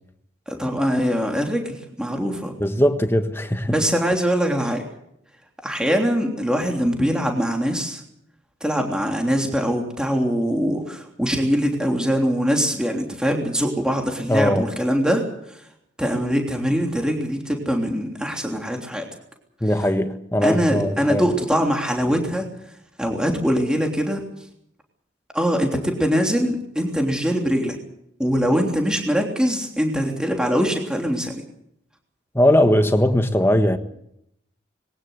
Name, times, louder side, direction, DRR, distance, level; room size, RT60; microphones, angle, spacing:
voice 1, 0.5-2.6 3.7-4.9 5.6-8.0 8.6-15.2 15.5-15.6 16.0-19.1 20.4-22.5 23.0-24.2 25.3-27.8 28.2-31.3, equal, 5° right, 3.2 m, -22 dB
voice 2, 2.6-3.7 14.3-14.6 19.6-21.3 32.3-33.8, left 1 dB, 10° left, 1.5 m, -19 dB
21.5 x 18.5 x 8.2 m
head